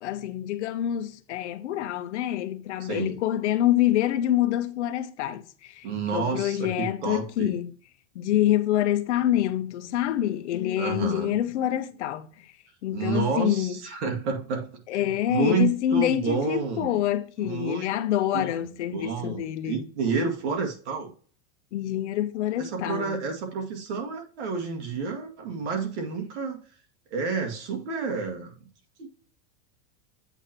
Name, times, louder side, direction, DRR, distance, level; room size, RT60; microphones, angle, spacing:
voice 1, 0.0-5.9 6.1-7.7 8.1-12.3 12.8-13.8 14.9-19.8 21.7-23.2, left 12 dB, 75° left, 0.8 m, -26 dB
voice 2, 2.8-3.2 5.8-7.5 10.8-11.3 12.9-17.0 17.4-17.9 18.3-18.5 18.9-21.1 22.6-26.6 27.1-28.6 29.0-29.1, right 5 dB, 75° right, 2.0 m, -30 dB
8.1 x 3.0 x 5.8 m
supercardioid pair, 170°, 35 cm